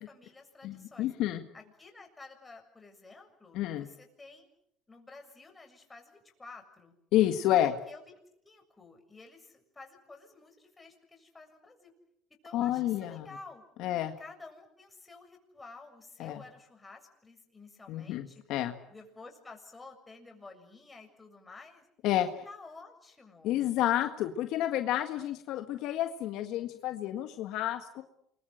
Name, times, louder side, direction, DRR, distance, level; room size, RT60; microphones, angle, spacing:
voice 1, 0.0-1.1 1.5-4.5 4.9-6.9 7.9-8.1 8.4-11.9 12.4-13.6 14.2-18.4 18.9-21.9 22.4-23.6, left 3 dB, 15° left, 3 dB, 7.1 m, -51 dB
voice 2, 0.6-1.4 3.5-3.9 7.1-7.7 12.5-13.3 13.8-14.1 16.2-16.4 17.9-18.7 22.0-22.3 23.4-28.0, left 13 dB, 65° left, 7 dB, 1.7 m, -30 dB
28.0 x 23.0 x 7.9 m, 0.76 s
supercardioid pair, 95°, 0 cm